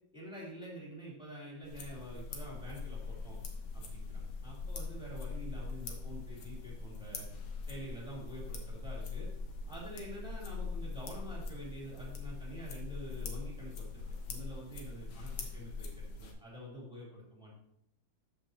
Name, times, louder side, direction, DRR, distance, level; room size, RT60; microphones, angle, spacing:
voice 1, 0.1-3.4 3.7-7.2 7.7-9.3 9.7-17.6, equal, ahead, -6 dB, 3.2 m, -47 dB
sound 1, 1.6-16.3, left 4 dB, 75° left, 1.9 m, -42 dB
13.5 x 5.7 x 2.9 m, 0.74 s
omnidirectional pair, 2.2 m